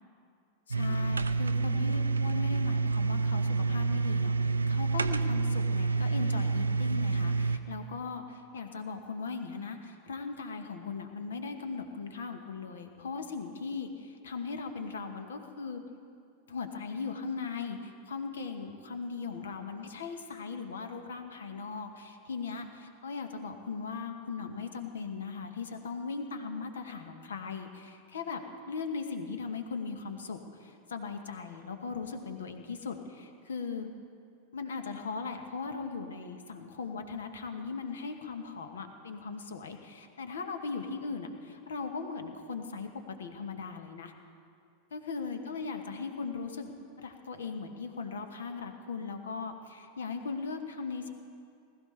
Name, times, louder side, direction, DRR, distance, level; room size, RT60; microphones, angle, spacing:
voice 1, 0.7-15.8 16.5-33.9 34.5-42.9 43.2-44.1 44.9-46.7 47.0-51.1, left 5 dB, 65° left, 7 dB, 1.1 m, -38 dB
sound 1, 0.7-7.6, right 4 dB, 75° right, 0.4 m, -28 dB
20.0 x 13.5 x 3.3 m, 2.4 s
figure-of-eight pair, 90°, 0 cm